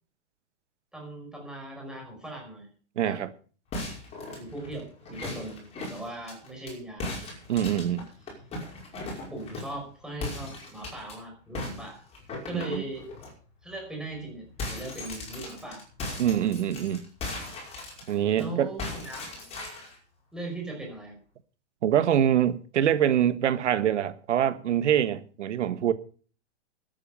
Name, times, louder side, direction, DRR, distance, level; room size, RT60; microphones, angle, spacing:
voice 1, 0.9-2.7 3.0-3.2 4.3-7.4 9.3-12.0 12.4-13.1 13.6-15.8 18.4-19.5 20.3-21.2, right 2 dB, ahead, 4.9 m, -39 dB
voice 2, 3.0-3.3 7.5-8.0 12.5-12.8 16.2-17.0 18.1-18.7 21.8-25.9, right 10 dB, 85° right, 1.5 m, -24 dB
sound 1, 3.7-6.7 7.0-9.8 10.2-11.1 11.5-13.3 13.7-13.9 14.1-18.4 18.8-20.0, left 2 dB, 15° left, 5.4 m, -38 dB
13.0 x 9.6 x 6.8 m
hypercardioid pair, 160°, 35 cm